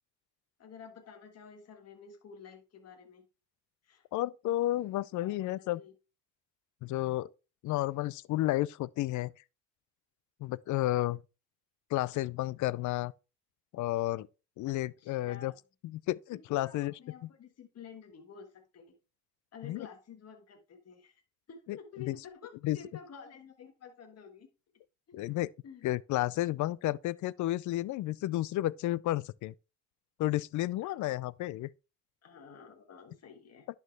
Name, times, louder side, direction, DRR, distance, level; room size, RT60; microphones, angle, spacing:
voice 1, 0.6-3.3 3.8-4.0 5.2-5.9 14.7-15.6 16.3-19.0 19.5-21.2 21.5-24.5 25.1-25.3 25.6-25.8 30.8-31.2 32.2-33.7, left 6 dB, 55° left, 1.6 m, -51 dB
voice 2, 4.1-5.8 6.8-7.3 7.6-9.3 10.4-11.2 11.9-13.1 13.7-14.3 14.6-15.5 15.9-16.9 19.6-19.9 21.7-21.8 22.1-22.2 22.6-22.8 25.1-25.5 25.8-29.5 30.2-31.7, left 16 dB, 75° left, 0.5 m, -31 dB
11.0 x 4.6 x 3.4 m
cardioid pair, 90°, 30 cm